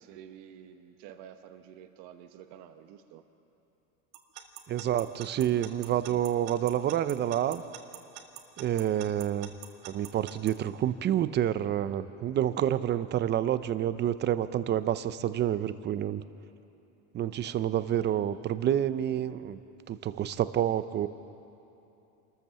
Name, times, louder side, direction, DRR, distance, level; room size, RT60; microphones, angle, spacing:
voice 1, 0.0-3.2, right 9 dB, 60° right, 7 dB, 1.2 m, -49 dB
Alarm / Clock, 4.1-10.5, right 13 dB, 75° right, 1.9 m, -44 dB
voice 2, 4.7-7.6 8.6-9.5 9.8-16.2 17.1-19.6 19.9-21.1, right 11 dB, 30° right, 13 dB, 0.7 m, -28 dB
27.0 x 14.0 x 7.0 m, 2.9 s
supercardioid pair, 135°, 36 cm